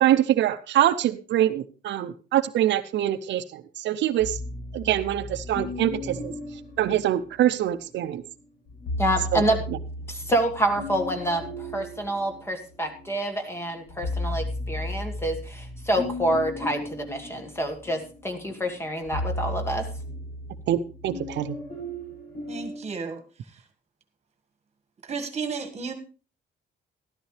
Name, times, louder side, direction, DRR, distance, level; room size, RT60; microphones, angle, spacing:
voice 1, 0.0-4.4 4.7-6.3 6.8-8.2 9.3-9.4 20.7-21.6, right 12 dB, 80° right, 11 dB, 0.7 m, -24 dB
sound 1, 4.2-7.7 8.7-13.1 13.5-22.8, left 1 dB, 55° left, 7.5 m, -35 dB
voice 2, 9.0-9.6 10.1-19.9, right 1 dB, 15° left, 6 dB, 1.6 m, -27 dB
voice 3, 22.5-23.6 25.0-25.9, right 5 dB, 35° right, 7 dB, 1.6 m, -33 dB
13.5 x 12.5 x 3.3 m, 0.34 s
cardioid pair, 155°, 18 cm